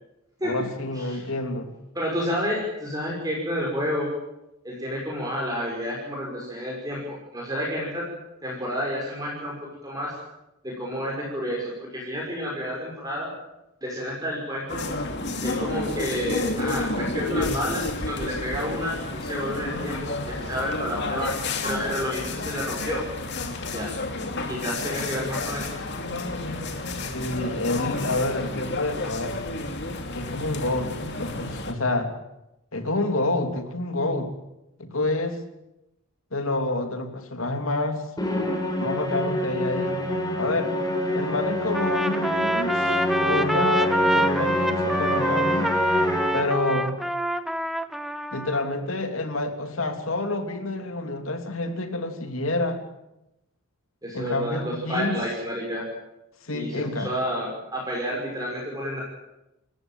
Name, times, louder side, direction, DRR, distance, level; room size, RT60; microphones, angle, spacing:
voice 1, 0.4-1.7 27.1-29.4 30.1-30.9 31.2-32.1 32.7-34.3 34.8-35.4 36.3-38.1 38.8-40.0 40.4-40.7 41.1-45.7 46.3-46.9 48.3-52.8 54.1-55.2 56.4-57.1, left 2 dB, 70° left, 6 dB, 3.1 m, -28 dB
voice 2, 1.9-4.1 4.6-8.1 8.4-9.6 9.8-10.2 10.6-13.3 13.8-14.8 15.4-23.0 23.7-24.0 24.5-25.8 54.0-55.8 56.5-59.0, equal, 15° right, -3 dB, 6.0 m, -30 dB
sound 1, 14.7-31.7, left 2 dB, 50° left, 2.8 m, -31 dB
Musical instrument, 38.2-46.7, left 1 dB, 20° left, 4.6 m, -27 dB
Trumpet, 41.7-48.7, equal, ahead, 1.0 m, -26 dB
29.5 x 14.5 x 9.1 m, 0.91 s
head